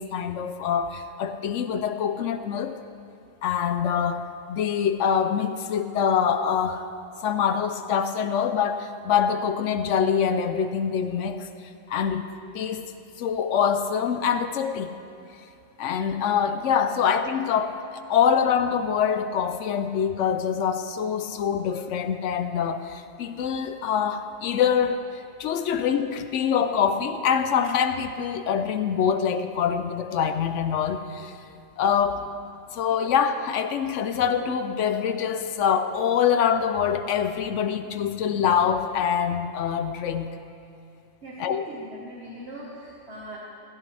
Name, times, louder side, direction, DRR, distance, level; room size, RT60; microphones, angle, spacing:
voice 1, 0.0-2.8 3.4-6.8 7.2-11.5 11.9-12.3 12.5-12.8 13.2-14.9 15.8-31.4 31.8-32.3 32.7-40.3 41.4-41.6, left 7 dB, 80° left, 9 dB, 0.9 m, -25 dB
voice 2, 41.2-43.4, right 1 dB, 65° right, -6 dB, 1.7 m, -41 dB
16.0 x 14.0 x 3.3 m, 2.6 s
omnidirectional pair, 1.2 m